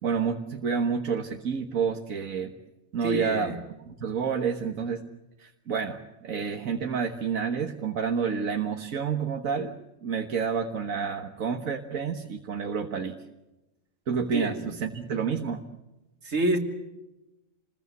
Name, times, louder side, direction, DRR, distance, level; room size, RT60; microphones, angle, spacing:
voice 1, 0.0-2.5 2.9-3.6 3.9-5.0 5.4-9.7 10.0-13.2 14.1-15.6, right 6 dB, 85° right, 4 dB, 1.8 m, -29 dB
voice 2, 3.0-3.6 14.3-14.7 16.2-16.6, right 1 dB, 70° right, 5 dB, 3.0 m, -27 dB
29.0 x 21.0 x 8.2 m, 1.0 s
omnidirectional pair, 1.4 m